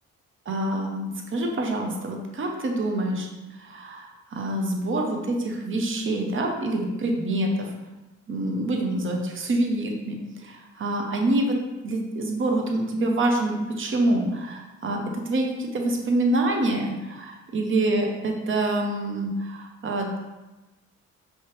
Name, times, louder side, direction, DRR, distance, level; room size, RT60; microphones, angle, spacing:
voice 1, 0.5-3.3 3.6-7.7 8.3-11.6 11.8-20.2, right 1 dB, 40° right, 2 dB, 0.8 m, -26 dB
4.6 x 2.9 x 3.2 m, 1.1 s
cardioid pair, 90°, 30 cm